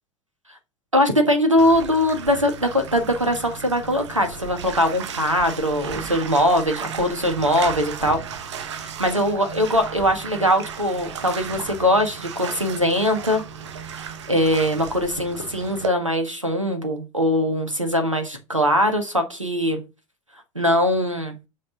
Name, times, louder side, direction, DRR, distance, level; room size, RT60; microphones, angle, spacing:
voice 1, 0.9-8.2 8.8-13.4 14.3-19.8 20.5-21.3, equal, 90° right, 6 dB, 1.6 m, -21 dB
Bathtub (filling or washing), 1.6-15.9, right 7 dB, 65° right, 1.1 m, -35 dB
6.3 x 5.9 x 5.1 m, 0.27 s
figure-of-eight pair, 75°, 16 cm